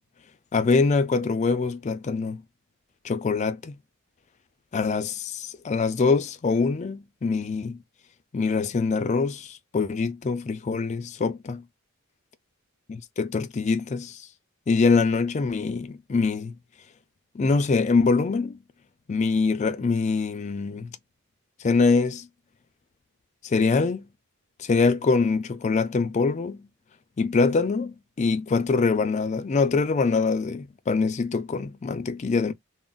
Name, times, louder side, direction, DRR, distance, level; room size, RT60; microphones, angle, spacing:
voice 1, 0.5-2.4 3.0-3.7 4.7-7.8 8.3-11.6 12.9-14.3 14.7-16.5 17.3-18.6 19.1-20.9 21.6-22.3 23.4-24.1 24.6-26.7 27.2-32.5, left 4 dB, 30° left, 0.3 m, -24 dB
2.4 x 2.0 x 3.7 m
head